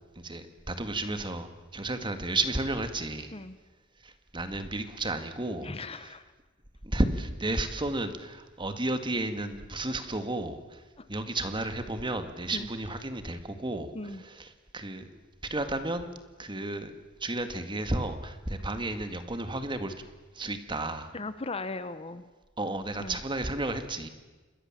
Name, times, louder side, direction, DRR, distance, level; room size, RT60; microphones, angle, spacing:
voice 1, 0.2-3.4 4.0-5.7 6.0-6.1 6.8-10.8 11.1-13.9 14.2-14.5 14.7-15.2 15.5-16.1 16.4-16.9 17.2-19.9 20.4-21.1 22.6-24.1, right 2 dB, 25° right, 8 dB, 2.0 m, -32 dB
voice 2, 5.6-6.2 11.0-11.1 12.5-12.7 13.9-14.2 21.1-22.2 23.0-23.2, left 2 dB, 30° left, 12 dB, 1.0 m, -37 dB
27.5 x 22.0 x 7.5 m, 1.2 s
head